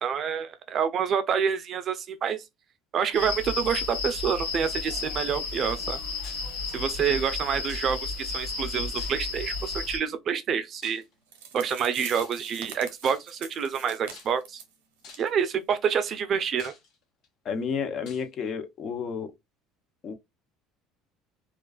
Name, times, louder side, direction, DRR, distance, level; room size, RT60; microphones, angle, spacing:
voice 1, 0.0-2.4 2.9-6.0 6.7-11.0 11.5-14.6 15.2-16.7, right 7 dB, 45° right, 0.4 m, -27 dB
sound 1, 3.1-10.0, left 4 dB, 80° left, 1.3 m, -33 dB
sound 2, 6.2-6.5 7.7-8.2 9.0-9.5 10.8-11.1 12.1-12.6 13.0-13.4 14.1-14.6 15.0-15.4 16.1-16.2 16.6-17.3 18.1-18.3, left 5 dB, 65° left, 1.0 m, -49 dB
sound 3, 11.0-11.1 11.3-14.7 15.1-15.3 15.6-15.7 16.2-16.3, right 7 dB, 90° right, 0.7 m, -43 dB
voice 2, 17.4-19.3 20.0-20.1, left 6 dB, 45° left, 0.6 m, -31 dB
2.3 x 2.3 x 2.3 m
supercardioid pair, 90°, 0 cm